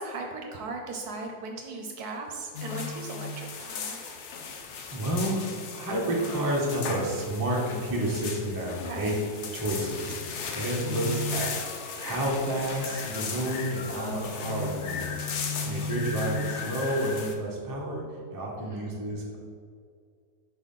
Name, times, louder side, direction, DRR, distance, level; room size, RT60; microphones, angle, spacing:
voice 1, 0.0-4.0 8.8-9.1 13.9-14.4 18.6-19.0, right 3 dB, 70° right, 2 dB, 1.1 m, -38 dB
sound 1, 2.5-17.3, left 4 dB, 65° left, 0.7 m, -35 dB
voice 2, 4.9-9.1 9.5-11.5 12.0-15.2 15.6-19.4, right 1 dB, 15° right, -3 dB, 0.7 m, -30 dB
4.7 x 4.1 x 5.3 m, 2.2 s
omnidirectional pair, 1.9 m